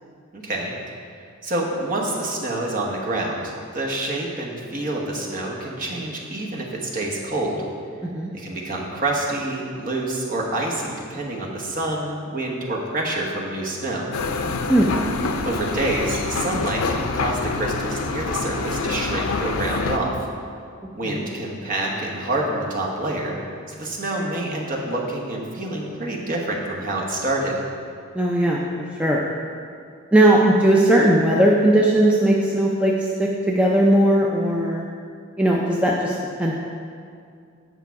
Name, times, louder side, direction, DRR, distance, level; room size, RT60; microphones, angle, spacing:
voice 1, 0.3-0.7 1.4-7.6 8.3-14.1 15.4-20.1 20.9-23.3 23.7-27.5, right 2 dB, 40° right, -2 dB, 1.1 m, -27 dB
sound 1, 14.1-20.0, left 4 dB, 80° left, 0.5 m, -26 dB
voice 2, 28.1-29.2 30.1-34.8 35.4-36.5, right 1 dB, 5° right, -3 dB, 0.4 m, -18 dB
8.3 x 5.7 x 4.7 m, 2.3 s
head